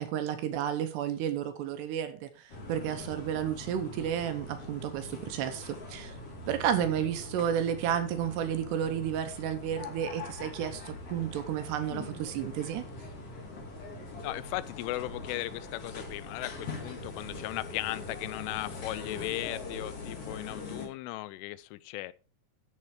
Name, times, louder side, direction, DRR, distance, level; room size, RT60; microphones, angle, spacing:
voice 1, 0.0-6.1 6.5-12.8, right 9 dB, 75° right, 2.6 m, -32 dB
sound 1, 2.5-20.9, left 2 dB, 40° left, 2.4 m, -42 dB
voice 2, 14.2-22.1, left 18 dB, 90° left, 3.1 m, -37 dB
13.0 x 5.5 x 4.7 m
omnidirectional pair, 5.5 m